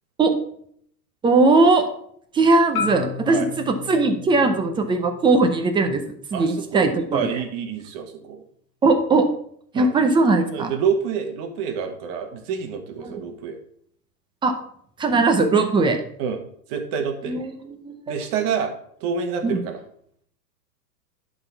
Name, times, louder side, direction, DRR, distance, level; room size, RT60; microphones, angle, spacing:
voice 1, 1.2-1.9 2.3-6.0 6.3-7.4 8.8-9.3 9.7-10.7 13.0-13.1 14.4-14.6 15.0-16.0 17.3-18.0 19.4-19.6, right 3 dB, 10° right, 6 dB, 0.6 m, -19 dB
Marimba xylophone, 2.8-6.9, left 6 dB, 60° left, 1.6 m, -35 dB
voice 2, 6.3-8.4 9.7-9.9 10.5-13.6 16.2-16.4 16.7-17.4 18.1-18.7 19.0-19.8, right 7 dB, 40° right, 5 dB, 1.5 m, -27 dB
11.0 x 4.0 x 4.6 m, 0.66 s
hypercardioid pair, 115°, 50 cm